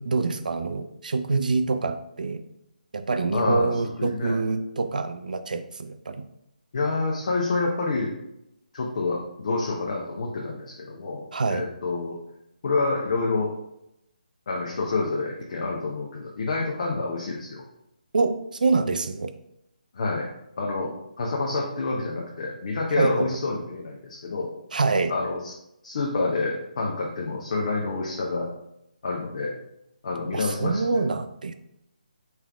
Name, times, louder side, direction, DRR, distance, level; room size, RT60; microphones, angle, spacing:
voice 1, 0.0-2.4 2.9-6.2 11.3-11.7 18.1-19.3 23.0-23.3 24.7-25.1 30.3-31.5, right 3 dB, 65° right, 9 dB, 0.4 m, -26 dB
voice 2, 3.3-4.4 6.7-8.1 8.7-12.2 12.6-13.5 14.5-17.6 19.9-20.3 20.6-24.5 25.1-25.5 25.8-28.5 29.0-29.6 30.0-31.0, left 3 dB, 45° left, -2 dB, 0.6 m, -28 dB
4.5 x 3.4 x 2.3 m, 0.83 s
figure-of-eight pair, 145°, 5 cm